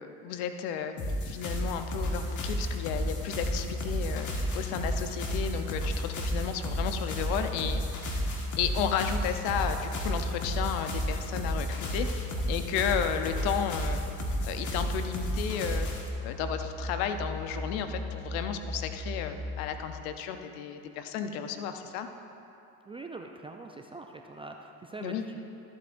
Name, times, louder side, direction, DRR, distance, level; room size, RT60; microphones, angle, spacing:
voice 1, 0.0-7.8 8.6-14.0 14.4-15.9 16.2-22.1 25.0-25.2, left 8 dB, 70° left, 8 dB, 0.8 m, -33 dB
sound 1, 1.0-16.1, equal, 40° left, 1.7 m, -33 dB
sound 2, 1.8-19.8, left 1 dB, 15° left, 2.2 m, -37 dB
voice 2, 22.9-25.4, right 3 dB, 15° right, 3 dB, 0.3 m, -43 dB
14.0 x 8.2 x 2.6 m, 2.8 s
hypercardioid pair, 80°, 46 cm